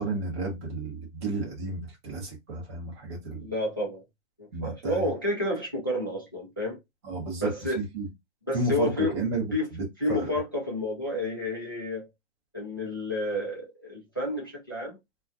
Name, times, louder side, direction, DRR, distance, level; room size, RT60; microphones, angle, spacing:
voice 1, 0.0-3.5 4.5-5.1 7.0-7.5 7.8-8.1 8.5-10.3, right 3 dB, 20° right, 0.7 m, -32 dB
voice 2, 3.4-4.0 4.4-6.8 7.4-7.8 8.5-9.1 9.5-9.7 10.0-12.1 12.5-15.0, left 1 dB, 20° left, 0.4 m, -30 dB
2.5 x 2.2 x 2.3 m
hypercardioid pair, 165°, 40 cm